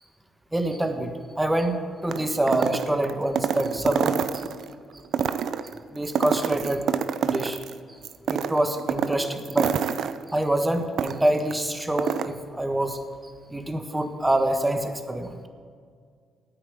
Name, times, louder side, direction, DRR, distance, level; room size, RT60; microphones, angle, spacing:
voice 1, 0.5-4.4 5.9-6.8 7.2-7.6 8.3-9.8 10.3-15.4, right 1 dB, 10° right, 6 dB, 1.4 m, -26 dB
sound 1, 2.1-4.7 5.0-7.7 8.0-11.5 11.8-12.3, right 8 dB, 65° right, 0.6 m, -27 dB
9.5 x 8.7 x 8.6 m, 2.1 s
cardioid pair, 90°, 0 cm